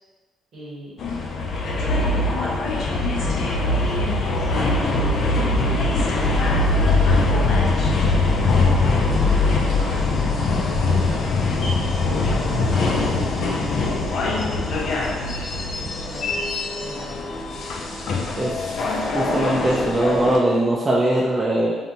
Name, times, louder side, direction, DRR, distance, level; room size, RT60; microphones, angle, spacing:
voice 1, 0.5-1.0 1.7-5.1 5.8-6.3 6.6-7.9 8.8-10.5 11.0-11.5 11.9-18.0, equal, 65° right, -7 dB, 1.1 m, -38 dB
sound 1, 1.0-20.4, left 3 dB, 65° left, 0.4 m, -22 dB
sound 2, 4.9-11.4, right 2 dB, 85° right, 1.4 m, -37 dB
voice 2, 18.4-18.9 19.1-21.7, right 1 dB, 30° right, -5 dB, 0.4 m, -21 dB
2.7 x 2.1 x 2.9 m, 1.4 s
supercardioid pair, 55°, 0 cm